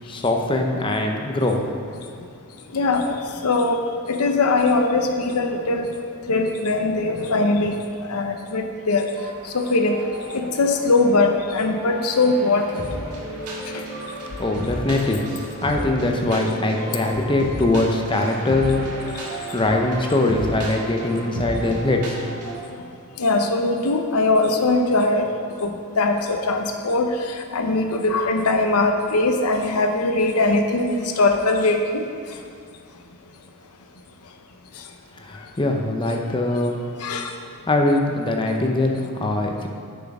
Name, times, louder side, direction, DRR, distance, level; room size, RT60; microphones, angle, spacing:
voice 1, 0.1-1.6 14.4-15.2 15.6-18.9 19.5-22.2 35.2-36.8 37.7-39.7, left 2 dB, 20° left, 2 dB, 0.6 m, -22 dB
voice 2, 2.7-3.8 4.1-5.9 6.3-9.1 9.4-10.0 10.3-13.0 13.7-13.8 16.8-17.0 23.2-25.3 25.6-32.0 37.0-37.3, left 2 dB, 80° left, 4 dB, 0.7 m, -21 dB
sound 1, 9.2-22.6, right 1 dB, 90° right, 1.7 m, -33 dB
6.8 x 6.2 x 4.9 m, 2.4 s
head